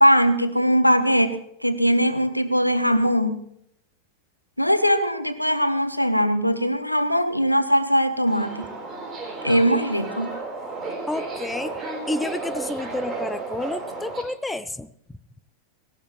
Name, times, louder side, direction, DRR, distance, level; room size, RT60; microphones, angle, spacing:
voice 1, 0.0-3.4 4.6-8.7 9.4-10.3, equal, 90° left, 11 dB, 1.0 m, -20 dB
Subway metro underground, 8.3-14.2, right 3 dB, 25° right, 3.8 m, -33 dB
voice 2, 11.1-15.2, left 2 dB, 5° left, 14 dB, 0.6 m, -30 dB
17.5 x 17.0 x 3.0 m, 0.72 s
figure-of-eight pair, 90°, 0 cm